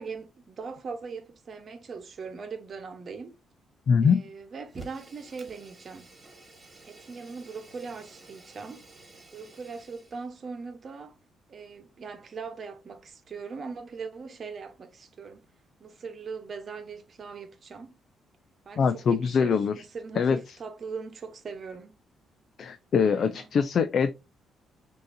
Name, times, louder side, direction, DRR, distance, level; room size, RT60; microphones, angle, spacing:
voice 1, 0.0-3.4 4.0-6.1 6.9-8.8 9.3-11.1 11.5-15.5 15.8-17.9 18.6-22.0 23.0-23.5, right 5 dB, 50° right, 1.1 m, -40 dB
voice 2, 3.9-4.2 18.8-19.7 20.2-20.4 22.6-24.1, left 6 dB, 55° left, 0.4 m, -23 dB
Fire, 4.7-10.3, right 3 dB, 25° right, 1.8 m, -51 dB
6.3 x 2.8 x 2.6 m
cardioid pair, 90°, 0 cm